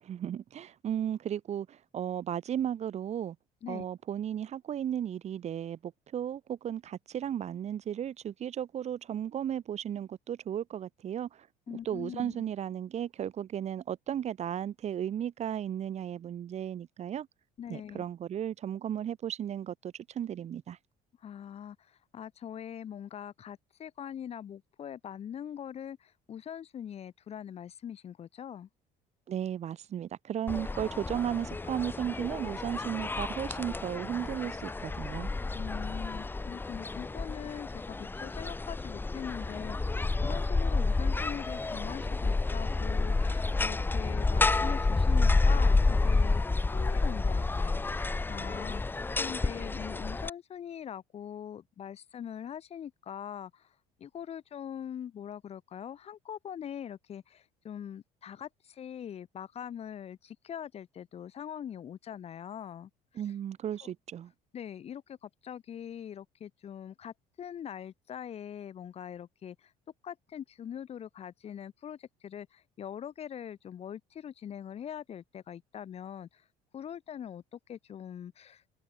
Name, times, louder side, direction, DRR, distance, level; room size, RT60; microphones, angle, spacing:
voice 1, 0.0-3.4 3.7-17.3 17.7-20.8 29.3-35.3 63.2-64.3, right 10 dB, 45° right, 7.2 m, -35 dB
voice 2, 11.7-12.5 17.6-18.1 21.2-28.7 35.5-46.4 46.7-63.2 63.8-63.9 64.5-69.7 70.0-76.4 76.7-78.7, left 9 dB, 40° left, 3.1 m, -42 dB
sound 1, 30.5-50.3, left 3 dB, 10° left, 1.3 m, -29 dB
cardioid pair, 140°, 16 cm